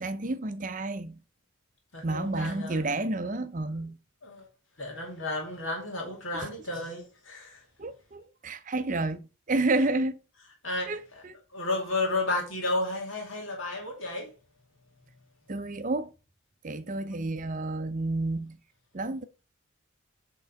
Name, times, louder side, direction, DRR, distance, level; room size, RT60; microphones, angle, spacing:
voice 1, 0.0-1.2 2.0-4.0 7.8-10.2 10.9-11.4 15.5-16.1 16.6-18.6 18.9-19.3, right 2 dB, 40° right, 0.6 m, -30 dB
voice 2, 1.9-2.8 4.2-4.5 4.8-7.6 10.6-11.2 11.5-14.3, left 2 dB, 65° left, 2.3 m, -32 dB
8.1 x 3.8 x 5.1 m
head